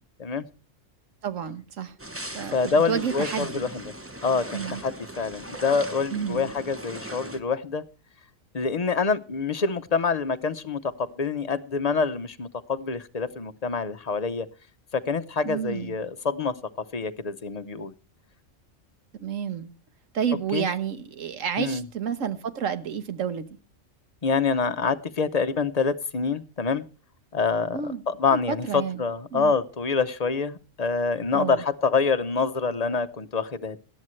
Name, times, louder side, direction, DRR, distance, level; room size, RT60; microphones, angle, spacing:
voice 1, 1.2-1.9 2.3-2.6 2.9-3.7 4.5-4.8 6.1-6.5 15.4-16.0 19.2-19.7 20.1-23.5 27.7-28.0 28.3-29.0 29.3-29.5 31.3-31.6, right 7 dB, 80° right, 1.5 m, -30 dB
sound 1, 2.0-7.4, right 1 dB, 10° right, 0.9 m, -39 dB
voice 2, 2.5-3.9 4.2-7.8 8.5-14.5 14.9-16.5 16.9-17.9 20.5-20.7 21.6-21.8 24.2-26.8 27.3-33.8, left 5 dB, 35° left, 0.7 m, -26 dB
18.5 x 12.5 x 3.1 m
omnidirectional pair, 1.3 m